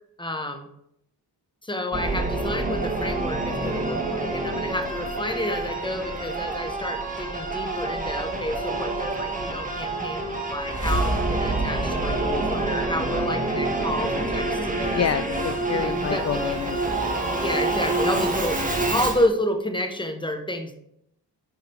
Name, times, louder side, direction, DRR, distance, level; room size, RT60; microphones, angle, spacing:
voice 1, 0.2-0.7 1.6-15.0 15.7-16.4 17.4-18.6 18.9-20.7, left 1 dB, 10° left, 5 dB, 1.3 m, -30 dB
Singing / Musical instrument, 1.9-19.3, right 2 dB, 20° right, 1.6 m, -27 dB
voice 2, 14.9-17.0, left 9 dB, 40° left, 12 dB, 0.4 m, -28 dB
10.5 x 4.8 x 3.6 m, 0.74 s
cardioid pair, 65°, 41 cm